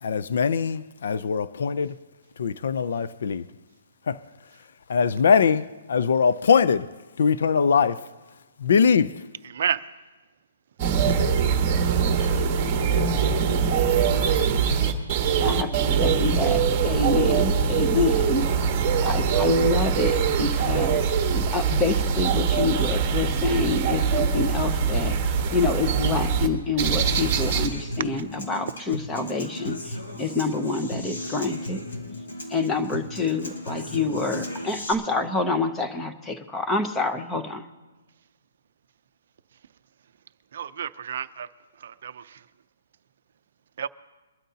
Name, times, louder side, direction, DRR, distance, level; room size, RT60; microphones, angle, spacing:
voice 1, 0.0-1.9 2.4-3.5 4.1-4.2 4.9-6.9 7.2-8.0 8.6-9.1, left 6 dB, 55° left, 0.4 m, -22 dB
voice 2, 9.5-9.8 40.5-41.5 41.8-42.4 43.8-43.9, right 8 dB, 45° right, 0.5 m, -30 dB
sound 1, 10.8-26.5 26.8-27.7, right 6 dB, 15° right, 1.2 m, -23 dB
voice 3, 15.4-18.5 19.0-21.0 21.3-31.8 32.5-37.7, left 3 dB, 5° left, 0.6 m, -27 dB
Human voice / Acoustic guitar, 26.9-34.9, left 1 dB, 75° left, 3.6 m, -36 dB
23.5 x 13.0 x 2.8 m
hypercardioid pair, 180°, 0 cm